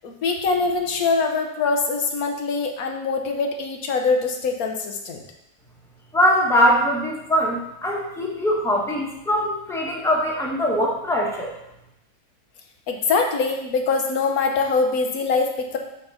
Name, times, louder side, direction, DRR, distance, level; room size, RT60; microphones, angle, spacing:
voice 1, 0.0-5.2 12.9-15.8, left 4 dB, 65° left, 3 dB, 1.3 m, -23 dB
voice 2, 6.1-11.5, equal, ahead, -3 dB, 1.2 m, -22 dB
6.7 x 4.1 x 5.7 m, 0.83 s
omnidirectional pair, 1.7 m